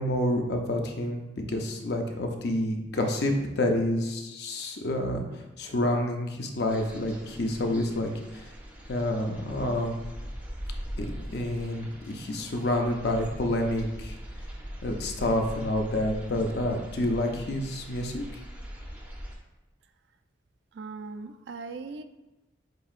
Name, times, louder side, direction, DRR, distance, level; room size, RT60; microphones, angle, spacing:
voice 1, 0.0-8.5 8.9-10.0 11.0-14.2 14.8-18.4, left 1 dB, 55° left, 3 dB, 0.5 m, -28 dB
sound 1, 6.7-19.4, equal, 10° right, 0.5 m, -41 dB
voice 2, 20.7-22.0, right 4 dB, 65° right, 9 dB, 0.3 m, -39 dB
7.6 x 2.8 x 2.4 m, 1.0 s
head